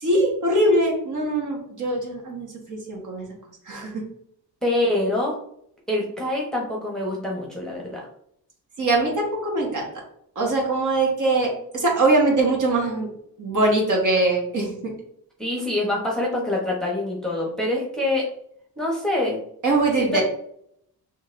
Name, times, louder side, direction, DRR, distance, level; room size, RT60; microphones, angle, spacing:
voice 1, 0.0-3.3 3.7-3.9 8.8-9.9 10.3-13.1 13.4-14.8 19.6-20.2, right 2 dB, 50° right, -1 dB, 1.5 m, -22 dB
voice 2, 4.6-5.4 5.9-8.1 15.4-18.3 18.8-19.4 20.0-20.2, left 1 dB, ahead, -2 dB, 1.0 m, -25 dB
6.3 x 3.2 x 2.6 m, 0.72 s
wide cardioid pair, 130°, 39 cm